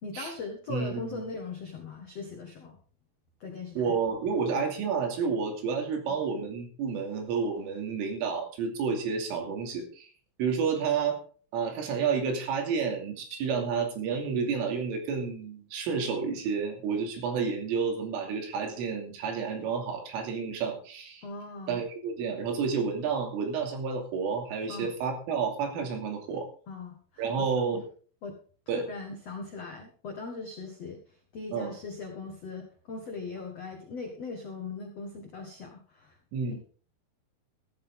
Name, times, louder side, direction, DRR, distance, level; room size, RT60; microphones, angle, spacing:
voice 1, 0.0-2.8 3.4-3.9 6.1-6.2 21.2-21.8 24.7-24.9 26.7-27.4 27.7-27.8 28.2-28.3 28.9-31.0 31.3-36.2 36.5-36.6, left 4 dB, 80° left, 2 dB, 1.4 m, -40 dB
voice 2, 0.7-1.2 3.8-10.1 10.4-11.2 11.5-21.2 21.7-26.5 27.2-27.8 28.7-28.8 31.5-31.7 36.3-36.6, right 5 dB, 75° right, 3 dB, 5.1 m, -30 dB
14.5 x 12.5 x 3.7 m, 0.42 s
omnidirectional pair, 5.9 m